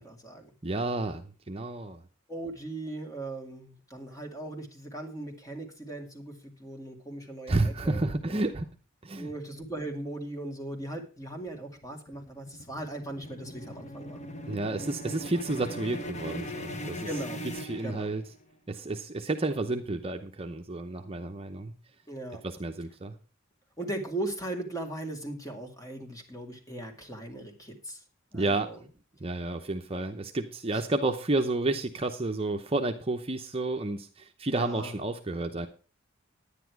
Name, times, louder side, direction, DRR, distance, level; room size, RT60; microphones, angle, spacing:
voice 1, 0.0-0.5 2.3-8.4 9.2-14.2 17.0-17.4 17.8-18.1 22.1-22.4 23.8-28.0 28.3-28.8 30.7-30.8 34.6-34.9, right 1 dB, 15° left, 3 dB, 2.3 m, -38 dB
voice 2, 0.6-2.0 7.5-8.7 9.0-9.3 14.5-17.1 17.6-18.2 18.7-21.7 22.4-23.1 28.3-28.7 29.2-35.7, right 2 dB, 30° right, 5 dB, 0.8 m, -31 dB
sound 1, 11.2-18.5, equal, 35° left, 1.1 m, -40 dB
10.0 x 10.0 x 4.7 m, 0.36 s
head